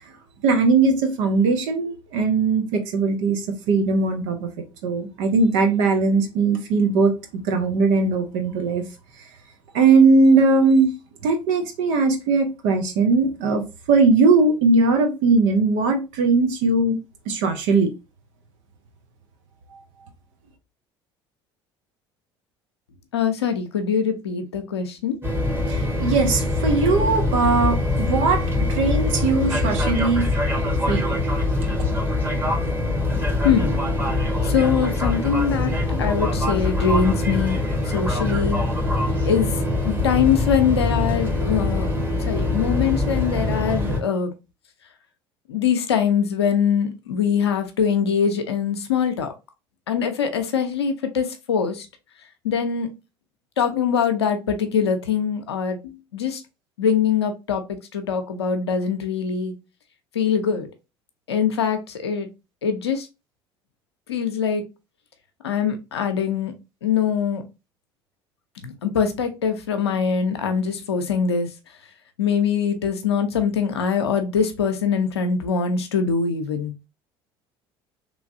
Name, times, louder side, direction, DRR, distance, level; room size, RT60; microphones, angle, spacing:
voice 1, 0.4-3.4 3.7-4.5 4.8-7.1 7.4-8.8 9.7-10.9 11.2-13.6 13.9-17.0 17.3-17.9 25.6-30.3 30.8-31.2 31.8-31.9, right 3 dB, 65° right, 1.0 m, -19 dB
voice 2, 23.1-25.2 33.4-33.8 34.4-38.6 39.2-39.5 39.8-41.9 42.2-44.3 45.5-49.3 49.9-51.9 52.4-52.9 53.6-56.4 56.8-57.6 57.9-59.5 60.1-60.7 61.3-62.3 62.6-63.1 64.1-64.6 65.4-66.5 66.8-67.4 68.6-71.5 72.2-76.7, left 7 dB, 85° left, 0.6 m, -23 dB
sound 1, 25.2-44.0, left 2 dB, 15° right, 1.3 m, -23 dB
3.1 x 3.0 x 2.6 m
hypercardioid pair, 65°, 13 cm